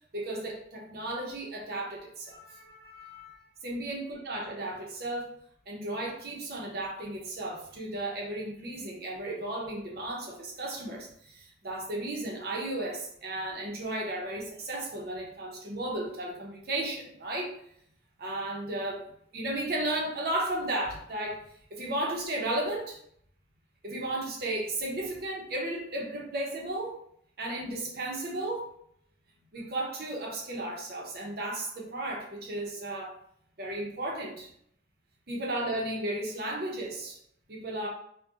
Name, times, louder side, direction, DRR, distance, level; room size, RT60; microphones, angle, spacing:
voice 1, 0.1-5.3 5.7-17.5 18.2-19.0 19.3-21.4 21.7-23.0 23.8-27.0 27.4-28.7 29.5-33.1 33.6-34.5 35.3-37.2 37.5-37.9, right 1 dB, 50° right, -1 dB, 0.6 m, -34 dB
2.4 x 2.1 x 2.7 m, 0.68 s
head